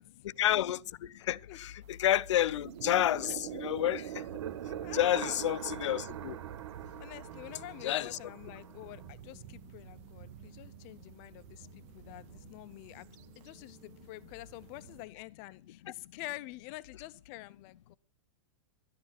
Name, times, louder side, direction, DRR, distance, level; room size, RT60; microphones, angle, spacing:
voice 1, 0.2-4.2 4.9-6.4 7.8-8.2 15.8-15.9, left 12 dB, 80° left, 0.6 m, -30 dB
sound 1, 1.8-15.0, right 10 dB, 35° right, 0.7 m, -53 dB
sound 2, 2.5-9.1, right 11 dB, 75° right, 1.0 m, -42 dB
voice 2, 4.8-5.4 7.0-13.1 13.4-18.0, left 18 dB, 30° left, 0.5 m, -47 dB
sound 3, 7.2-15.1, right 7 dB, 90° right, 1.7 m, -58 dB
12.0 x 9.9 x 5.9 m
supercardioid pair, 165°, 15 cm